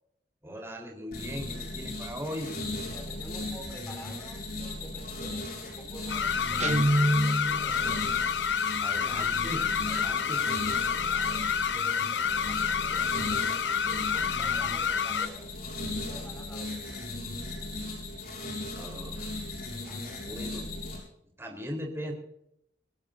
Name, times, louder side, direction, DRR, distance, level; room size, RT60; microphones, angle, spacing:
voice 1, 0.4-2.6 8.8-10.4 17.8-18.0 18.8-19.5 20.2-20.7 21.4-22.1, equal, 15° right, 1 dB, 4.0 m, -39 dB
sound 1, 1.1-21.0, left 2 dB, 60° left, 7.1 m, -37 dB
voice 2, 2.8-8.1 10.0-10.3 10.9-13.6 13.9-15.5 16.1-17.1 19.8-20.3, equal, 10° left, 2 dB, 4.0 m, -49 dB
sound 2, 6.1-15.3, left 7 dB, 85° left, 0.7 m, -29 dB
Guitar, 6.6-7.8, right 1 dB, 40° right, 0.9 m, -25 dB
25.0 x 15.0 x 2.7 m, 0.75 s
head